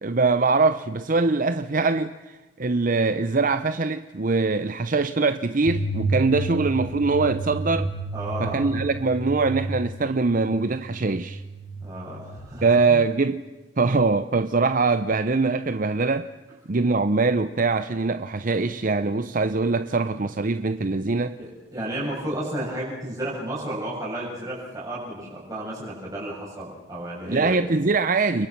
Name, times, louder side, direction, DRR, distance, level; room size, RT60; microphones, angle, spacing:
voice 1, 0.0-7.9 8.4-11.4 12.6-13.4 13.8-16.3 16.7-21.4 27.3-28.5, right 3 dB, 45° right, 0.7 m, -23 dB
sound 1, 5.6-12.5, right 2 dB, 70° left, 7.7 m, -31 dB
voice 2, 8.1-8.7 11.8-13.0 21.4-27.6, right 1 dB, 20° right, 7.5 m, -32 dB
29.5 x 23.0 x 6.1 m
head